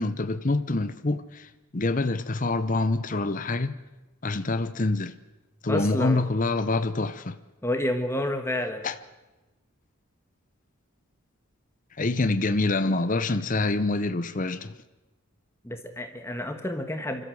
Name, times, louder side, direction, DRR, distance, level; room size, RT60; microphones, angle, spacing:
voice 1, 0.0-3.8 4.2-5.1 5.6-7.4 8.8-8.9 12.0-14.7, left 2 dB, 35° left, 0.7 m, -26 dB
voice 2, 5.7-6.2 7.6-8.8 15.6-17.2, left 1 dB, 10° left, 1.5 m, -29 dB
25.5 x 13.5 x 7.8 m
head